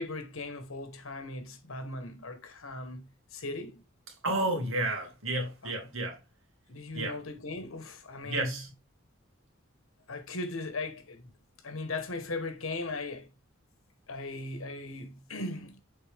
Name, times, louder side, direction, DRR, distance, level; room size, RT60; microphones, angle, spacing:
voice 1, 0.0-3.8 5.6-5.7 6.7-8.6 10.1-11.3 11.6-13.3 14.1-15.8, left 2 dB, 80° left, 1.4 m, -38 dB
voice 2, 4.2-6.2 6.9-7.2 8.2-8.7, right 2 dB, 70° right, 2.4 m, -31 dB
6.8 x 4.3 x 3.5 m
head